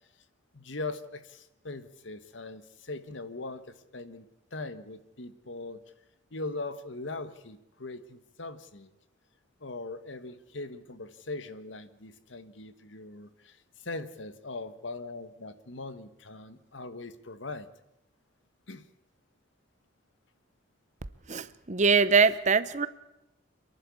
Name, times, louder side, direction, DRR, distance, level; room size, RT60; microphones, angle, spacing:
voice 1, 0.5-4.3 4.5-5.8 6.3-8.9 9.6-17.7 18.7-18.8, left 2 dB, 70° left, 12 dB, 1.4 m, -40 dB
voice 2, 21.3-22.9, right 5 dB, 35° right, 15 dB, 0.8 m, -23 dB
28.5 x 11.5 x 8.4 m, 0.91 s
head